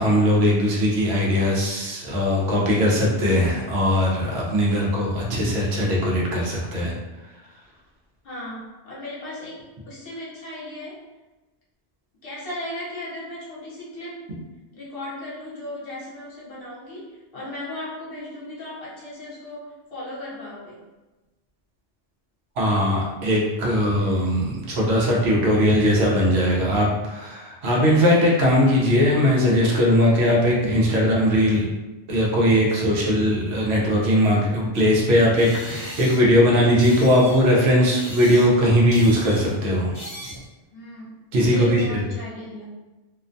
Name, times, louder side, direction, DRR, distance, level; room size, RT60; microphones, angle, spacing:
voice 1, 0.0-6.9 22.6-31.7 32.1-39.9 41.3-42.0, equal, 75° right, -3 dB, 0.9 m, -19 dB
voice 2, 8.2-11.0 12.2-14.2 14.7-20.8 40.7-41.1 41.4-42.7, left 1 dB, 60° left, -6 dB, 0.9 m, -36 dB
sound 1, 34.7-34.8 35.4-36.4 36.8-37.5 37.9-38.6 38.9-39.5 39.9-40.5, equal, 15° left, 0.5 m, -39 dB
2.4 x 2.1 x 2.5 m, 1.1 s
omnidirectional pair, 1.1 m